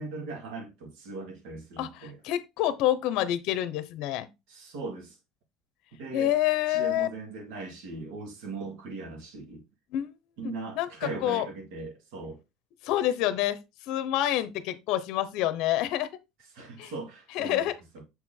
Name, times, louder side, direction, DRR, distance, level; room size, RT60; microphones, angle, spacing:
voice 1, 0.0-2.2 4.5-5.2 5.9-6.3 6.7-9.6 10.4-12.4 16.5-17.7, right 3 dB, 75° right, 2.0 m, -39 dB
voice 2, 1.8-4.3 6.1-7.1 9.9-10.1 10.4-11.5 12.8-13.6 13.9-16.1 16.8-16.9 17.3-17.7, left 13 dB, 60° left, 0.8 m, -27 dB
7.0 x 4.5 x 3.7 m
cardioid pair, 160°, 0 cm